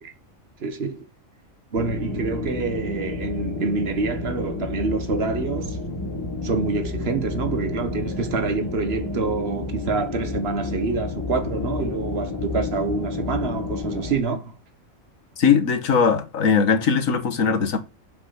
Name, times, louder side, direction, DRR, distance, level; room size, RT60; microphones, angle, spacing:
voice 1, 0.6-1.1 1.7-5.8 6.4-14.6, right 4 dB, 50° right, 1.4 m, -26 dB
sound 1, 1.7-14.2, left 3 dB, 20° left, 1.4 m, -30 dB
voice 2, 15.4-17.8, left 6 dB, 80° left, 1.7 m, -20 dB
6.7 x 6.0 x 5.8 m
omnidirectional pair, 1.4 m